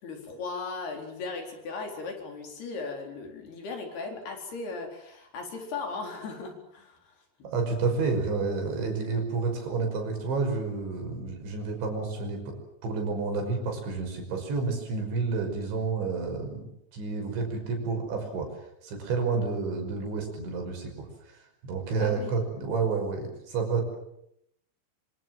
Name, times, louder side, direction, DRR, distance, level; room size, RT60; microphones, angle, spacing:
voice 1, 0.0-7.1 7.4-7.5 22.0-22.4, left 4 dB, 60° left, 3 dB, 6.1 m, -37 dB
voice 2, 7.4-12.6 12.8-16.6 16.9-18.5 18.8-21.1 21.6-24.0, right 4 dB, 75° right, 4 dB, 7.9 m, -30 dB
27.0 x 25.5 x 7.8 m, 0.76 s
omnidirectional pair, 5.3 m